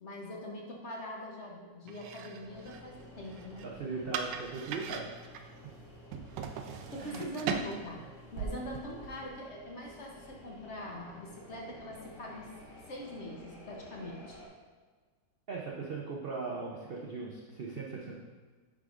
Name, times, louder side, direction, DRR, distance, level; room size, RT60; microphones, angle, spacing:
voice 1, 0.0-3.6 6.9-12.5 12.9-14.4, left 1 dB, 50° left, -2 dB, 1.1 m, -42 dB
sound 1, 1.9-9.3, right 6 dB, 85° right, 1.2 m, -41 dB
sound 2, 2.4-14.5, left 1 dB, 70° left, 2.4 m, -53 dB
voice 2, 3.6-5.3 7.0-7.2 15.5-18.1, right 4 dB, 65° right, -2 dB, 0.5 m, -39 dB
10.0 x 4.9 x 2.5 m, 1.4 s
omnidirectional pair, 1.9 m